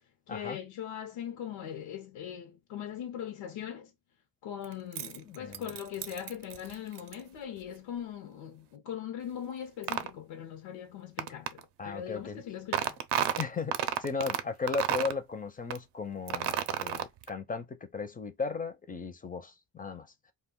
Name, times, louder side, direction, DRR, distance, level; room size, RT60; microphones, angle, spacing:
voice 1, 0.3-3.9 4.4-13.0, left 9 dB, 85° left, 0.7 m, -40 dB
sound 1, 4.6-7.1 9.8-10.1 11.2-11.6 12.7-14.4 14.7-15.2 15.7-15.8 16.3-17.3, right 10 dB, 65° right, 0.6 m, -31 dB
voice 2, 5.3-5.7 11.8-12.4 13.4-20.1, left 4 dB, 20° left, 0.5 m, -36 dB
2.3 x 2.2 x 3.6 m
cardioid pair, 100°, 44 cm